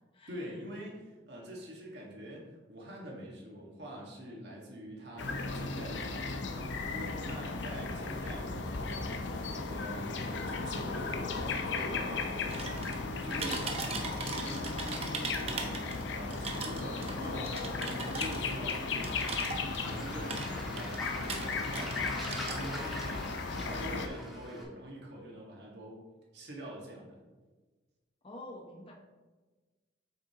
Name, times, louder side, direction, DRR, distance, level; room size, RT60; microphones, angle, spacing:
voice 1, 0.3-6.5 6.9-9.1 9.6-19.3 19.8-22.1 22.4-26.0 26.3-27.2, right 1 dB, 65° right, -2 dB, 1.7 m, -45 dB
sound 1, 5.2-24.1, left 3 dB, 80° left, 0.7 m, -36 dB
sound 2, 12.5-13.0 13.3-16.0 16.3-19.9 20.2-22.0 22.2-23.0, right 4 dB, 35° right, 0.9 m, -39 dB
Waves surf, 12.6-24.6, equal, ahead, 1.6 m, -46 dB
voice 2, 28.2-28.9, left 1 dB, 30° left, 0 dB, 0.8 m, -46 dB
8.3 x 6.4 x 2.9 m, 1.3 s
head